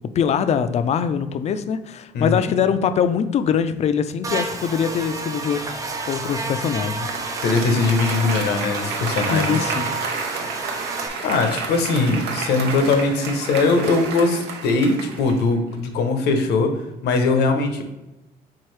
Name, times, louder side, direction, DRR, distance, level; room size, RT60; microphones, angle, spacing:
voice 1, 0.0-5.8 6.1-7.1 9.3-9.9, left 7 dB, 40° left, 11 dB, 0.4 m, -22 dB
voice 2, 2.1-2.6 7.4-9.6 11.2-17.8, left 3 dB, 80° left, 6 dB, 0.7 m, -21 dB
Buzz, 4.2-11.1, right 3 dB, 20° right, 0.5 m, -30 dB
Applause, 6.6-15.5, right 4 dB, 80° right, 0.8 m, -30 dB
4.6 x 3.6 x 3.2 m, 0.98 s
cardioid pair, 110°, 17 cm